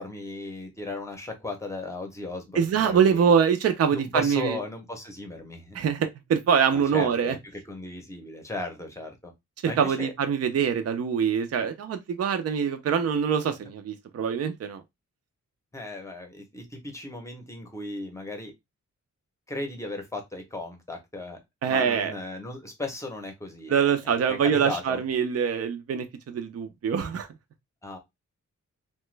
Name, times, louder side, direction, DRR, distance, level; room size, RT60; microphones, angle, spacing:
voice 1, 0.0-3.3 3.9-5.8 6.7-9.3 9.7-10.1 15.7-18.5 19.5-21.4 21.7-23.9 24.3-25.0 27.8-28.0, left 2 dB, 10° left, 0.7 m, -36 dB
voice 2, 2.6-4.6 5.7-7.4 9.6-14.8 21.6-22.1 23.7-27.3, right 7 dB, 55° right, 0.5 m, -24 dB
2.9 x 2.2 x 3.1 m
wide cardioid pair, 165°, 30 cm